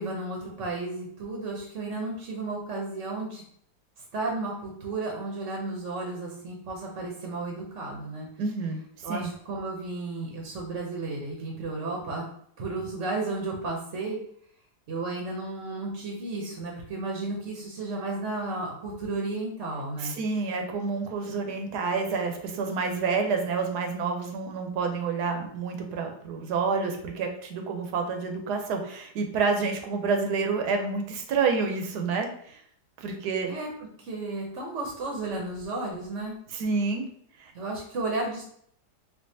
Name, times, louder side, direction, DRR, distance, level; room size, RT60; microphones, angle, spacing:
voice 1, 0.0-3.4 4.1-8.3 9.0-12.2 12.6-14.2 14.9-20.2 33.5-33.7 34.0-36.4 37.5-38.4, right 2 dB, 55° right, -1 dB, 0.9 m, -33 dB
voice 2, 8.4-8.8 9.1-9.3 20.0-32.6 33.0-33.5 36.5-37.0 37.4-37.5, right 4 dB, 80° right, 4 dB, 1.2 m, -28 dB
4.5 x 2.5 x 2.7 m, 0.65 s
omnidirectional pair, 1.7 m